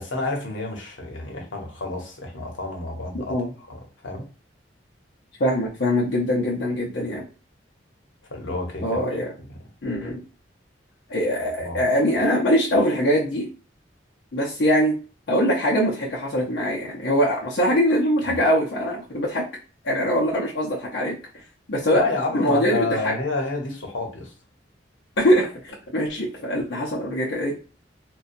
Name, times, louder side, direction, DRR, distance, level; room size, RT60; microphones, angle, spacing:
voice 1, 0.0-4.3 8.3-9.0 9.5-9.6 11.6-11.9 18.3-18.4 21.9-24.3, left 3 dB, 90° left, 1 dB, 0.9 m, -29 dB
voice 2, 5.4-7.2 8.8-9.3 9.8-10.2 11.1-13.5 14.3-15.0 15.3-19.4 19.8-21.2 21.7-22.0 22.3-23.1 25.2-27.5, equal, 65° left, -4 dB, 0.6 m, -22 dB
2.7 x 2.2 x 2.5 m, 0.34 s
head